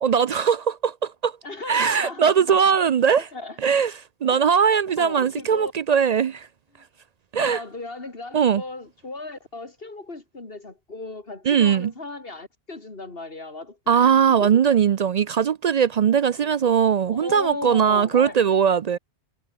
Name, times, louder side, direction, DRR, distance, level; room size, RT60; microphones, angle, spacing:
voice 1, 0.0-1.3 1.7-3.3 3.6-6.5 7.3-7.6 8.3-8.6 11.5-11.9 13.9-19.0, right 7 dB, 55° right, 0.4 m, -20 dB
voice 2, 1.4-2.8 3.3-3.6 4.3-4.4 5.0-5.7 6.8-6.9 7.3-14.6 17.1-18.4, left 3 dB, 65° left, 3.1 m, -36 dB
omnidirectional pair, 1.1 m